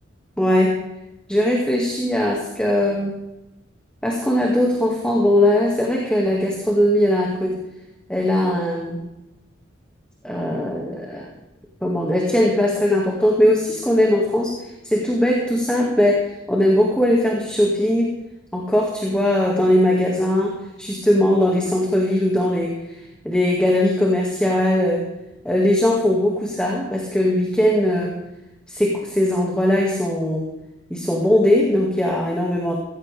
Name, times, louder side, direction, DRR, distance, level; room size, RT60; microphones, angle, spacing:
voice 1, 0.4-0.8 1.3-3.1 4.0-7.6 8.1-9.0 10.2-11.3 11.8-18.2 18.5-25.1 25.4-28.2 28.7-30.5 30.9-32.7, left 1 dB, 5° left, -2 dB, 2.0 m, -20 dB
17.0 x 16.0 x 3.5 m, 0.93 s
head